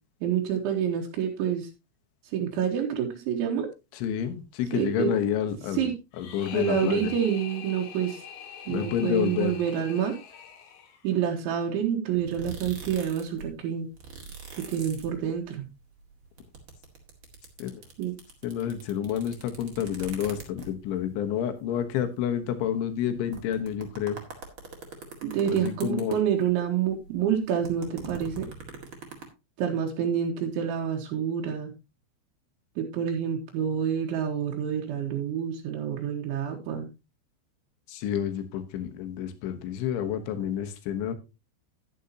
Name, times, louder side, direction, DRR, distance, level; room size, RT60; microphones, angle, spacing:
voice 1, 0.2-1.7 2.3-3.7 4.7-5.1 5.7-5.9 6.5-8.2 8.7-10.1 11.0-13.9 14.7-15.7 18.0-18.1 25.2-28.5 29.6-31.7 32.8-36.9, right 8 dB, 80° right, 1 dB, 3.7 m, -28 dB
voice 2, 3.9-5.9 6.2-7.1 8.7-9.6 17.6-17.8 18.4-24.2 25.5-26.1 37.9-41.1, left 9 dB, 75° left, 8 dB, 3.5 m, -29 dB
sound 1, 6.1-11.3, left 7 dB, 60° left, 2.6 m, -44 dB
sound 2, 12.1-13.5 13.7-15.6 15.9-20.9 21.5-21.6 21.8-21.9 22.6-22.7 23.1-26.5 26.8-29.2, right 5 dB, 45° right, 1.7 m, -43 dB
11.0 x 10.5 x 2.8 m, 0.26 s
omnidirectional pair, 5.5 m